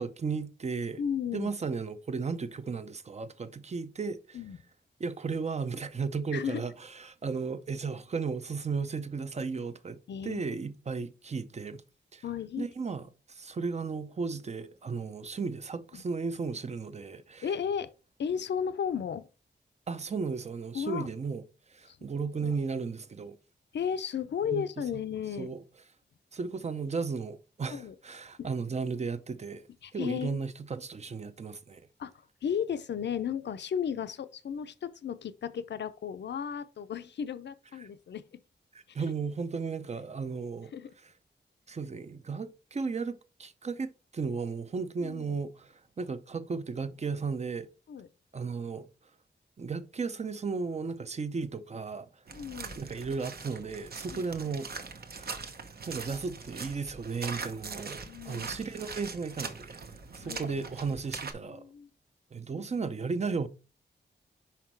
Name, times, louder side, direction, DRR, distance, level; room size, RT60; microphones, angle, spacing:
voice 1, 0.0-1.0 1.3-4.4 5.0-10.0 10.2-11.8 12.1-12.2 12.6-17.5 19.9-21.4 21.7-23.4 24.5-24.6 25.4-25.6 26.3-29.7 29.9-31.9 37.8-37.9 38.9-40.7 41.7-47.7 48.3-48.9 49.6-52.1 52.8-54.7 55.0-55.4 55.9-61.6 62.3-63.5, right 5 dB, 35° right, 0.6 m, -35 dB
voice 2, 1.0-1.5 4.3-4.6 6.3-6.6 10.1-10.4 12.2-12.7 15.9-16.0 17.4-17.9 18.2-19.3 20.7-21.1 21.9-22.1 22.4-22.5 23.7-25.5 27.7-27.9 28.4-28.5 29.8-30.5 32.0-38.4 40.7-40.9 45.0-45.4 47.9-48.1 52.3-52.8 54.1-54.2 58.0-58.6 60.2-61.0 61.5-61.9 62.6-62.7, left 8 dB, 75° left, 0.6 m, -34 dB
sound 1, 52.3-61.3, right 4 dB, 60° right, 1.0 m, -42 dB
5.8 x 5.2 x 4.5 m
wide cardioid pair, 135°, 18 cm